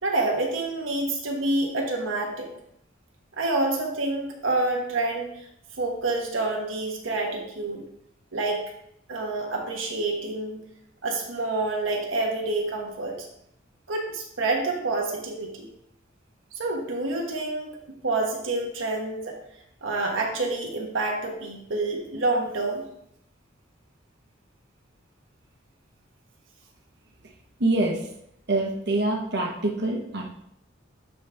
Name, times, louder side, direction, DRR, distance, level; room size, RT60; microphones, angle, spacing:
voice 1, 0.0-2.5 3.4-5.5 5.8-7.8 8.3-8.6 9.1-10.6 11.0-13.3 13.9-15.7 16.5-19.4 19.8-22.8, right 2 dB, 85° right, 0 dB, 1.3 m, -28 dB
voice 2, 27.6-28.1 28.5-30.2, right 2 dB, 60° right, 0 dB, 1.2 m, -25 dB
10.0 x 4.2 x 3.5 m, 0.74 s
head